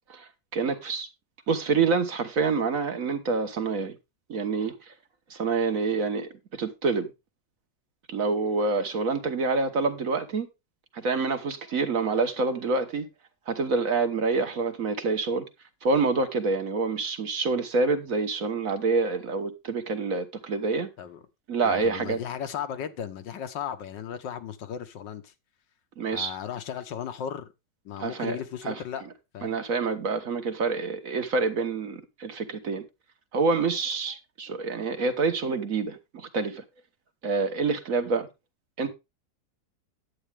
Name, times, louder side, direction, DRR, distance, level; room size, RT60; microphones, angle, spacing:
voice 1, 0.1-1.1 1.5-4.0 4.3-4.9 5.3-7.1 8.1-10.5 10.9-13.1 13.5-15.5 15.8-20.9 21.5-22.2 26.0-26.3 28.0-28.4 28.6-28.8 29.4-32.8 33.3-36.6 37.2-38.3 38.8-38.9, right 4 dB, 50° right, 1.4 m, -27 dB
voice 2, 21.6-25.3 26.1-27.5 27.9-29.0 29.3-29.6, left 9 dB, 85° left, 1.7 m, -36 dB
10.0 x 8.5 x 3.4 m
omnidirectional pair, 1.9 m